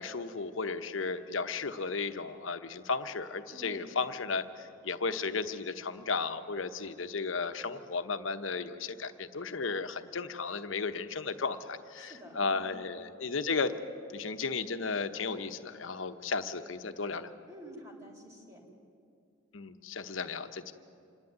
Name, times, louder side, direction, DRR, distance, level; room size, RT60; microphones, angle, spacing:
voice 1, 0.0-4.4 4.8-13.7 14.1-17.3 19.5-20.7, left 4 dB, 80° left, 9 dB, 1.0 m, -34 dB
voice 2, 3.5-3.9 12.0-12.7 17.5-18.6, equal, 15° right, -1 dB, 3.1 m, -49 dB
27.0 x 10.5 x 9.6 m, 2.4 s
head